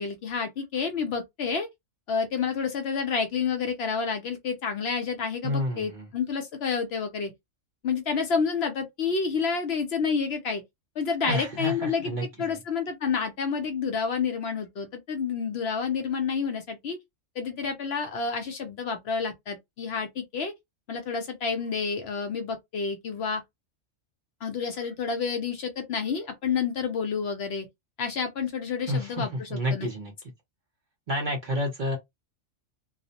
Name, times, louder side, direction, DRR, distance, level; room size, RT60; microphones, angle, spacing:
voice 1, 0.0-1.7 2.1-7.3 7.8-10.6 11.0-17.0 17.4-20.5 20.9-23.4 24.4-27.7 28.0-29.9, left 5 dB, 65° left, 0.7 m, -29 dB
voice 2, 5.4-6.0 11.2-12.6 28.9-30.1 31.1-32.0, equal, 50° right, 0.6 m, -30 dB
2.3 x 2.0 x 2.7 m
omnidirectional pair, 1.3 m